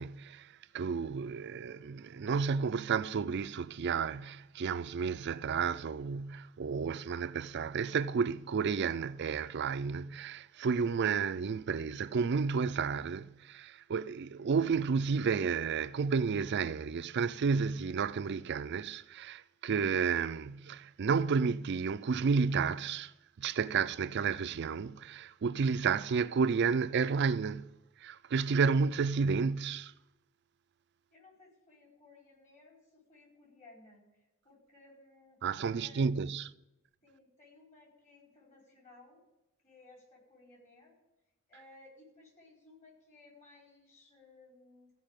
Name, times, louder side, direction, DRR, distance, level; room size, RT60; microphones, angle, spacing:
voice 1, 0.0-29.9 35.4-36.5, right 5 dB, 55° right, 0.4 m, -31 dB
voice 2, 31.1-36.1 37.0-39.2 39.6-41.0 41.5-44.9, left 2 dB, 40° left, 4.9 m, -59 dB
15.0 x 5.5 x 8.9 m
head